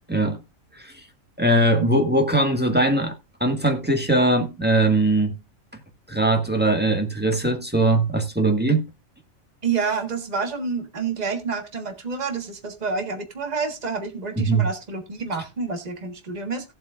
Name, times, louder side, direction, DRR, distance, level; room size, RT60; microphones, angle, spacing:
voice 1, 0.1-0.4 0.8-1.0 1.4-3.1 3.4-5.3 6.1-8.8 14.4-14.7, right 2 dB, 5° right, 1.5 m, -20 dB
voice 2, 9.6-16.7, right 5 dB, 30° right, 1.6 m, -28 dB
17.0 x 7.8 x 2.5 m
omnidirectional pair, 1.4 m